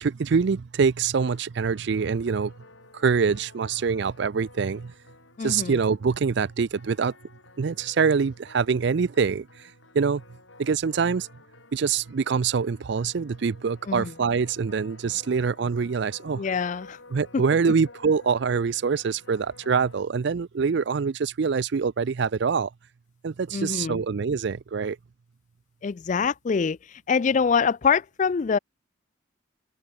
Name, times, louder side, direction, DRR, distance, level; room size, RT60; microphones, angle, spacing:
voice 1, 0.0-2.5 2.9-4.9 5.4-7.1 7.6-9.5 9.9-10.2 10.6-11.3 11.7-16.4 17.1-22.7 23.2-25.0, right 5 dB, 55° right, 0.4 m, -25 dB
sound 1, 1.2-20.0, left 3 dB, 65° left, 3.4 m, -52 dB
voice 2, 5.4-5.8 13.9-14.1 16.4-17.0 17.3-17.4 23.5-24.0 25.8-28.6, left 5 dB, 35° left, 0.3 m, -25 dB
head